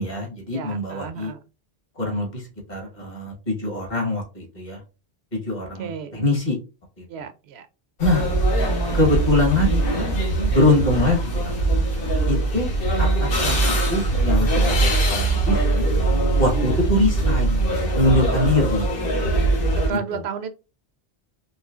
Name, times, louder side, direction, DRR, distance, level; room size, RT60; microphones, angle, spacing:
voice 1, 0.0-1.3 1.9-4.8 5.3-6.6 7.0-7.1 8.0-8.3 8.9-10.0 10.5-11.8 12.3-12.7 13.0-15.8 16.4-17.6 17.9-18.8 19.9-20.2, left 2 dB, 45° left, 1.5 m, -23 dB
voice 2, 0.5-1.4 5.8-6.2 7.1-7.7 19.8-20.5, right 7 dB, 80° right, 0.8 m, -33 dB
sound 1, 8.0-19.9, right 2 dB, 65° left, 1.0 m, -21 dB
4.2 x 2.9 x 2.4 m
omnidirectional pair, 1.1 m